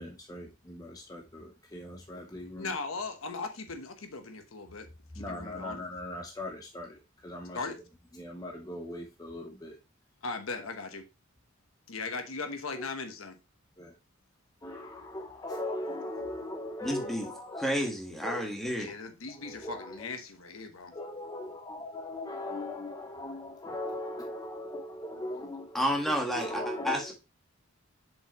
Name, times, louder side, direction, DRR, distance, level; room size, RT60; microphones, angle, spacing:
voice 1, 0.0-2.7 5.1-7.6 8.1-9.8 13.8-13.9 14.6-17.8 18.2-18.4 19.4-20.0 20.9-25.8 26.1-27.1, left 1 dB, 20° left, 0.8 m, -39 dB
voice 2, 2.6-4.9 5.1-5.8 7.5-7.8 10.2-11.0 11.9-13.4 18.8-20.9, left 4 dB, 85° left, 1.1 m, -38 dB
voice 3, 16.8-17.3 17.6-18.9 25.7-27.1, equal, ahead, 1.6 m, -31 dB
7.1 x 5.2 x 3.1 m
head